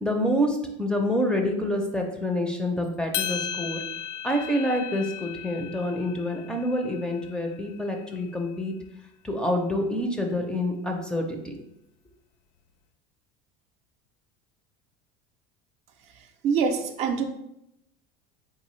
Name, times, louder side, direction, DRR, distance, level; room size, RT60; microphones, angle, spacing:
voice 1, 0.0-3.8 4.2-8.8 9.2-11.6, left 1 dB, 5° left, 3 dB, 0.5 m, -27 dB
sound 1, 3.1-7.5, left 9 dB, 60° left, 0.4 m, -35 dB
voice 2, 16.1-17.2, right 6 dB, 50° right, 5 dB, 0.5 m, -26 dB
3.7 x 3.7 x 3.1 m, 0.82 s
supercardioid pair, 125°, 15 cm